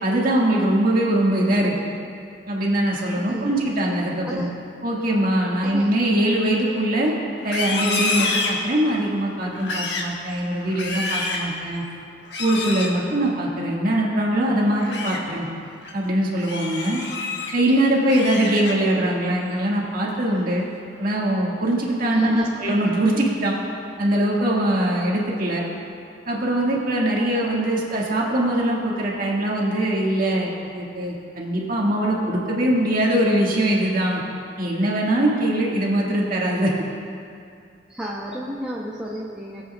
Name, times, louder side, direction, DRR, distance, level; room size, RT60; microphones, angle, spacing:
voice 1, 0.0-1.9 2.5-4.5 4.8-7.1 7.4-11.8 12.4-15.5 15.9-17.0 17.5-20.6 21.0-23.6 24.0-25.6 26.3-34.2 34.6-36.7, right 1 dB, 55° right, -3 dB, 1.6 m, -22 dB
voice 2, 5.6-5.9 22.1-22.5 37.9-39.6, equal, 5° right, -5 dB, 0.7 m, -32 dB
Livestock farm animals working animals, 7.4-9.1 9.5-10.1 10.6-11.5 12.3-12.9 14.6-15.2 15.7-15.9 16.4-17.5 17.9-19.0 19.4-19.7 20.1-20.5, left 3 dB, 75° left, 1.1 m, -28 dB
20.5 x 7.9 x 2.3 m, 2.4 s
head